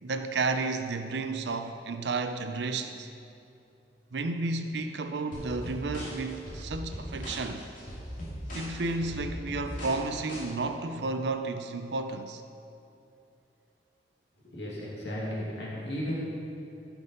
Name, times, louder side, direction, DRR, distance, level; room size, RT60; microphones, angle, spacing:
voice 1, 0.0-3.1 4.1-7.6 8.5-12.4, right 3 dB, 75° right, 8 dB, 0.6 m, -32 dB
sound 1, 5.3-10.4, equal, 45° left, 2.8 m, -39 dB
voice 2, 14.4-16.2, equal, 70° left, -5 dB, 2.3 m, -34 dB
14.5 x 6.1 x 5.3 m, 2.7 s
head